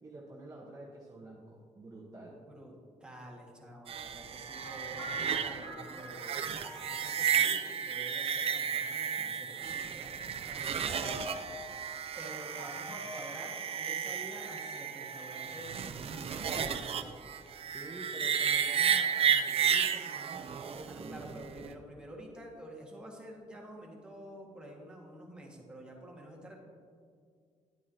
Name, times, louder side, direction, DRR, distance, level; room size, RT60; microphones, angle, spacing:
voice 1, 0.0-2.4 17.7-21.4, right 2 dB, 25° right, -3 dB, 1.0 m, -48 dB
voice 2, 3.0-6.4 6.9-11.3 12.2-17.3 20.9-26.6, right 1 dB, 5° right, -3 dB, 1.7 m, -49 dB
sound 1, 3.9-21.7, right 8 dB, 50° right, 0.5 m, -33 dB
sound 2, 4.5-7.4 9.2-9.6 11.0-11.7 12.6-13.3, left 1 dB, 35° left, 1.5 m, -46 dB
10.5 x 8.4 x 2.8 m, 2.2 s
cardioid pair, 105°, 13 cm